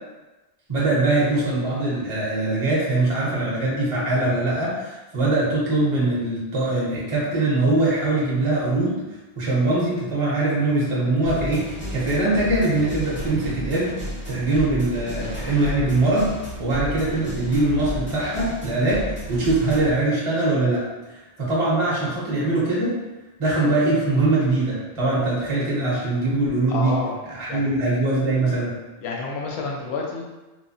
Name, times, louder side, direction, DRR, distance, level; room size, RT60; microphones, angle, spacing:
voice 1, 0.7-9.0 9.4-13.9 14.3-16.3 16.6-20.8 21.4-23.0 23.4-26.9 27.3-28.7, right 2 dB, 35° right, -6 dB, 0.7 m, -22 dB
sound 1, 11.3-20.0, equal, 15° left, 0.4 m, -33 dB
voice 2, 26.7-27.2 27.5-27.7 29.0-30.2, left 4 dB, 65° left, 0 dB, 0.8 m, -29 dB
3.0 x 2.1 x 2.6 m, 1.1 s
omnidirectional pair, 1.3 m